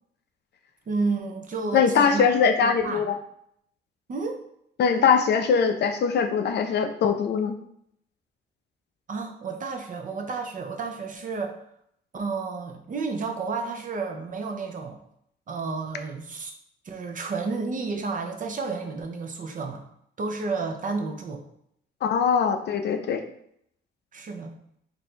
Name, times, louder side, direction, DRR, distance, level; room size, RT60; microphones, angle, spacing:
voice 1, 0.9-2.2 2.6-3.0 4.1-4.4 9.1-11.6 12.1-15.0 15.5-16.5 16.8-19.9 20.2-21.4 24.1-24.6, right 4 dB, 40° right, 4 dB, 0.7 m, -31 dB
voice 2, 1.7-3.2 4.8-7.5 22.0-23.2, left 6 dB, 60° left, 7 dB, 0.5 m, -22 dB
3.2 x 2.6 x 4.3 m, 0.71 s
cardioid pair, 90°, 20 cm